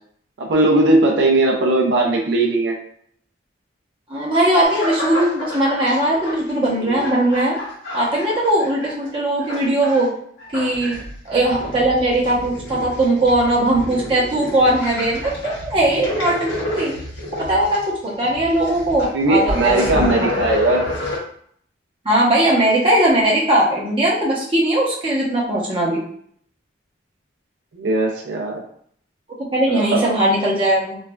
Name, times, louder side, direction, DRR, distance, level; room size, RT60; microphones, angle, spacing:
voice 1, 0.4-2.8 10.8-11.0 19.0-20.8 27.7-28.6 29.7-30.0, right 2 dB, 80° right, 0 dB, 0.5 m, -18 dB
voice 2, 4.1-7.6 7.9-10.1 10.5-11.0 11.2-16.9 17.4-20.3 22.0-26.0 29.5-31.0, right 1 dB, 30° right, -6 dB, 0.8 m, -19 dB
sound 1, 4.6-9.1 9.4-10.1 10.4-21.2, left 1 dB, 85° left, 1.3 m, -29 dB
3.1 x 2.3 x 2.2 m, 0.63 s
head